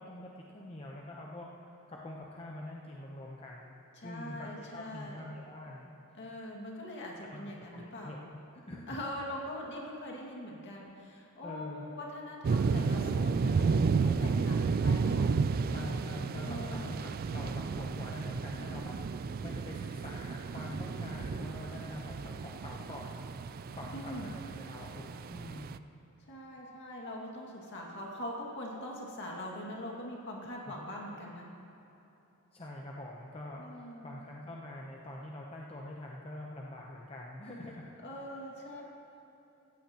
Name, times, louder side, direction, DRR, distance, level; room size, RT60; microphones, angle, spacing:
voice 1, 0.0-1.5 1.9-3.8 4.0-5.9 7.3-8.2 8.5-9.0 9.2-9.3 11.4-11.9 15.7-18.9 19.4-23.1 23.7-25.8 30.7-30.8 32.5-37.9 38.2-38.3, left 1 dB, 25° left, -3 dB, 0.8 m, -45 dB
voice 2, 4.0-5.3 6.1-8.3 8.9-15.3 16.4-17.0 23.9-24.4 26.3-31.5 33.6-34.2 38.0-38.8, left 1 dB, 55° left, -2 dB, 2.2 m, -42 dB
sound 1, 12.4-25.8, right 5 dB, 40° right, 0.3 m, -32 dB
17.0 x 14.5 x 3.0 m, 3.0 s
head